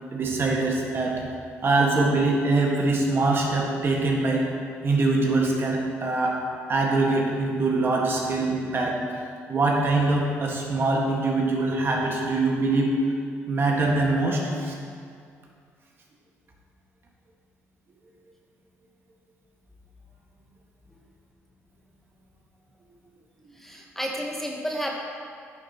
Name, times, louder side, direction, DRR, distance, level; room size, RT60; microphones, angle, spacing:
voice 1, 0.1-1.2 1.6-4.4 4.8-6.4 6.7-9.0 9.5-13.0 13.5-14.7, right 2 dB, 45° right, -1 dB, 1.5 m, -23 dB
voice 2, 23.6-24.9, equal, 5° left, -1 dB, 1.0 m, -31 dB
10.5 x 6.2 x 2.9 m, 2.3 s
supercardioid pair, 75°, 6 cm